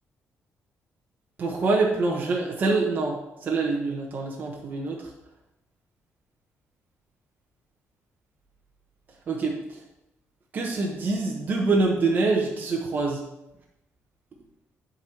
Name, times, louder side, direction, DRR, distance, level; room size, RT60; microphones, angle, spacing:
voice 1, 1.4-5.0 9.3-9.6 10.5-13.2, right 3 dB, 35° right, -1 dB, 1.0 m, -25 dB
10.5 x 4.0 x 4.4 m, 0.89 s
cardioid pair, 170°, 5 cm